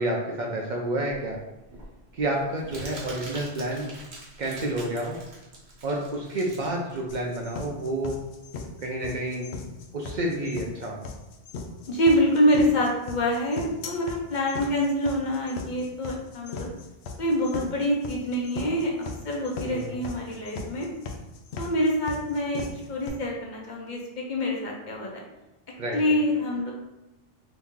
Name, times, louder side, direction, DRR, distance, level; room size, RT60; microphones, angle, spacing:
voice 1, 0.0-1.4 2.1-3.9 4.4-5.2 5.8-8.2 8.8-9.5 9.9-11.1 19.7-20.0 25.8-26.2, right 1 dB, 55° right, -1 dB, 0.6 m, -29 dB
Crumpling crinkling, 1.3-8.2, right 1 dB, 90° right, 1.2 m, -44 dB
sound 1, 7.1-23.1, left 4 dB, 85° left, 0.8 m, -38 dB
voice 2, 11.9-16.7 17.2-18.9 19.2-20.9 21.6-25.2 25.9-26.7, equal, 55° left, -1 dB, 0.7 m, -26 dB
2.9 x 2.6 x 3.5 m, 0.97 s
omnidirectional pair, 1.1 m